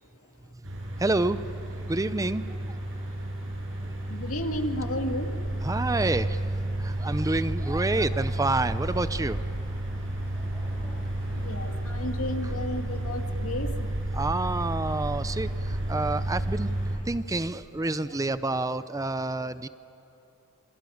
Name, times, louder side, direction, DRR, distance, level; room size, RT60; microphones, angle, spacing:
voice 1, 0.6-1.4 1.9-2.8 5.6-6.4 6.8-9.4 12.4-12.5 14.1-16.7 17.1-19.7, right 2 dB, 15° right, 13 dB, 0.5 m, -28 dB
sound 1, 0.6-17.0, right 1 dB, 65° right, 7.0 m, -31 dB
voice 2, 4.1-5.3 11.3-13.9, left 1 dB, 80° left, 4 dB, 2.3 m, -33 dB
sound 2, 4.9-13.1, equal, 10° left, 6.9 m, -52 dB
28.0 x 23.0 x 9.4 m, 2.9 s
head